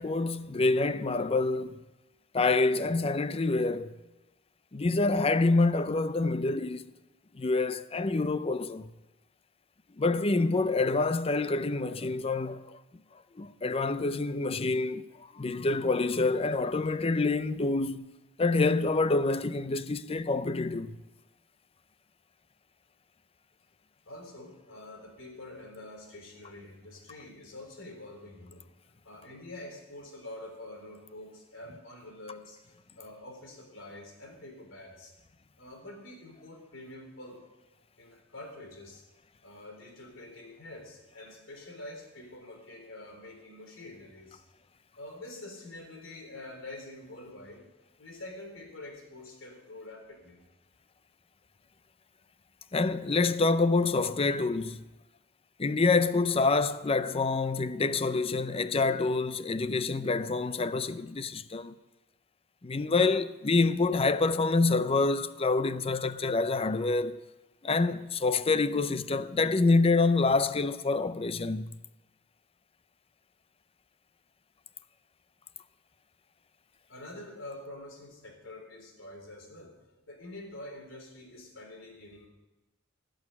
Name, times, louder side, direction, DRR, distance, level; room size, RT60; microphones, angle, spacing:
voice 1, 0.0-1.8 2.3-4.0 4.7-6.8 7.3-8.9 10.0-12.8 13.4-15.1 15.3-18.1 18.4-21.0 52.7-54.8 55.6-61.7 62.6-67.2 67.6-71.7, left 3 dB, 30° left, 0.5 m, -27 dB
voice 2, 24.1-28.7 29.0-35.1 35.6-37.4 38.0-39.0 39.4-44.4 45.0-47.7 48.0-50.4 76.9-82.3, left 1 dB, 75° left, 3.7 m, -46 dB
17.0 x 6.5 x 9.8 m
head